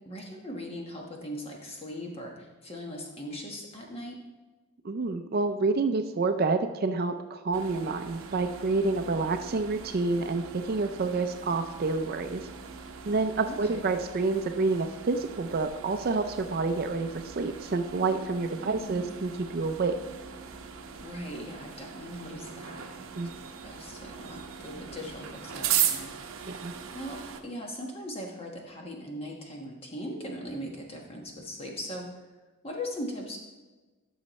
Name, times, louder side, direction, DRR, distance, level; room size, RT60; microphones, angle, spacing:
voice 1, 0.0-4.2 13.5-13.9 18.6-19.4 21.0-23.2 23.6-26.1 26.6-32.1 32.6-33.4, equal, 25° left, 0 dB, 1.2 m, -40 dB
voice 2, 4.8-12.5 13.1-20.0 23.2-23.3 26.5-26.7, right 3 dB, 45° right, 7 dB, 0.4 m, -28 dB
sound 1, 7.5-27.4, right 9 dB, 70° right, 0.7 m, -38 dB
13.0 x 6.3 x 3.1 m, 1.2 s
head